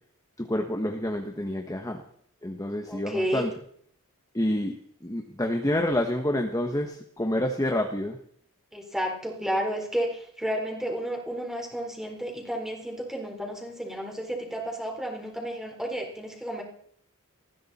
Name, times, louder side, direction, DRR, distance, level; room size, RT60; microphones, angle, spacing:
voice 1, 0.4-2.0 2.4-3.5 4.3-8.2, left 1 dB, 15° left, 3 dB, 1.3 m, -28 dB
voice 2, 2.9-3.5 8.7-16.6, equal, ahead, 0 dB, 4.2 m, -32 dB
19.5 x 15.5 x 4.3 m, 0.63 s
head